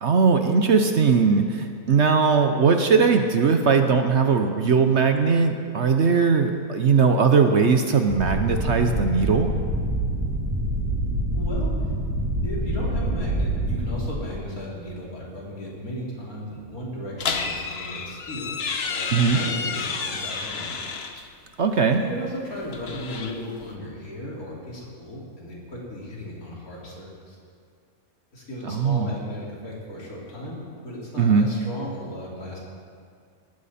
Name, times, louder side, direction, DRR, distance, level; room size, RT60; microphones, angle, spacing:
voice 1, 0.0-9.5 19.1-19.4 21.6-22.0 28.7-29.1 31.2-31.5, right 5 dB, 55° right, 6 dB, 1.0 m, -19 dB
sound 1, 8.1-14.1, right 1 dB, 5° right, 4.4 m, -26 dB
voice 2, 11.3-11.7 12.4-18.6 18.9-20.8 22.0-27.4 28.3-32.6, left 1 dB, 70° left, -4 dB, 3.7 m, -36 dB
sound 2, 17.2-21.3 22.6-23.7, left 5 dB, 50° left, 1.1 m, -30 dB
18.5 x 14.0 x 4.3 m, 2.2 s
omnidirectional pair, 1.6 m